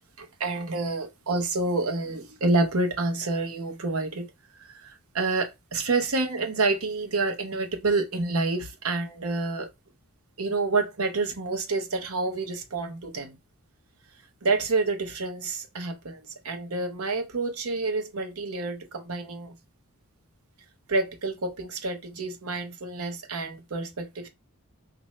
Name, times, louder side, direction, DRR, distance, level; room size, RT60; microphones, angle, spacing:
voice 1, 0.2-4.3 4.6-9.7 10.4-13.4 14.4-16.2 16.4-19.5 20.9-24.3, right 3 dB, 85° right, 0.8 m, -28 dB
4.2 x 2.6 x 3.1 m
head